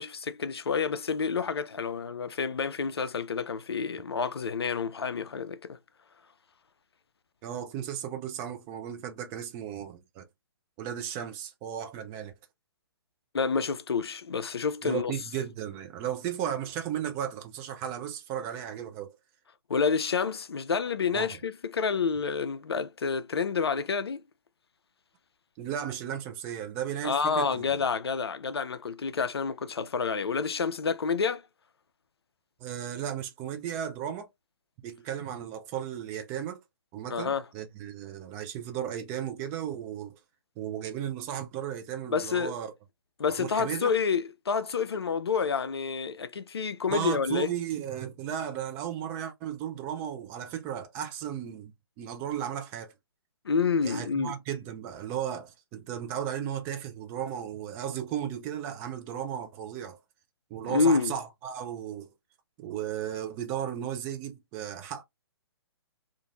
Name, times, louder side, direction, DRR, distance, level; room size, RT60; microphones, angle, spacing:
voice 1, 0.0-5.8 13.3-15.1 19.7-24.2 27.0-31.4 37.1-37.4 42.1-42.5 43.2-47.5 53.5-54.3 60.6-61.1, left 5 dB, 70° left, 0.4 m, -28 dB
voice 2, 7.4-10.3 10.8-12.3 14.8-19.2 21.1-21.3 25.6-27.6 32.6-34.3 34.8-36.6 36.9-40.2 40.6-42.7 43.4-43.9 46.9-52.9 53.8-60.0 60.5-62.1 62.6-65.0, right 9 dB, 20° right, 0.4 m, -35 dB
2.5 x 2.5 x 2.9 m
figure-of-eight pair, 130°, 14 cm